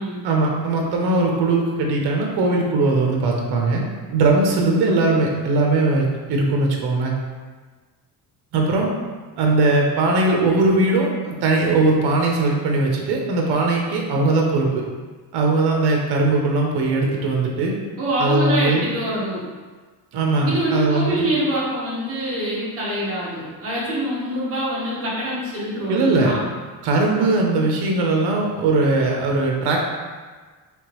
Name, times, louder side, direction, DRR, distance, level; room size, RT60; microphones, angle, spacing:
voice 1, 0.2-3.8 4.1-7.1 8.5-8.9 9.4-14.8 15.3-17.7 18.2-18.8 20.1-21.3 25.9-26.3 26.8-29.8, right 2 dB, 70° right, 0 dB, 0.8 m, -20 dB
voice 2, 18.0-19.4 20.4-26.4, right 1 dB, 35° right, -7 dB, 1.1 m, -25 dB
3.5 x 3.0 x 3.0 m, 1.4 s
cardioid pair, 170°, 41 cm